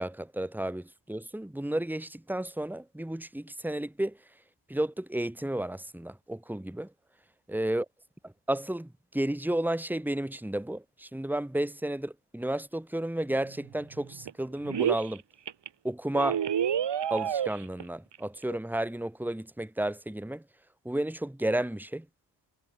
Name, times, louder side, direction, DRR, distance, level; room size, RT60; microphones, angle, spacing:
voice 1, 0.0-4.2 4.7-6.9 7.5-7.8 8.5-15.2 15.8-16.4 17.1-20.4 20.8-22.0, right 1 dB, 5° right, 2.9 m, -32 dB
sound 1, 13.3-13.4 13.6-14.3 14.6-15.2 15.5-15.7 16.1-17.8 18.1-18.2 18.4-18.6, right 9 dB, 70° right, 3.4 m, -29 dB
wide cardioid pair, 150°, 44 cm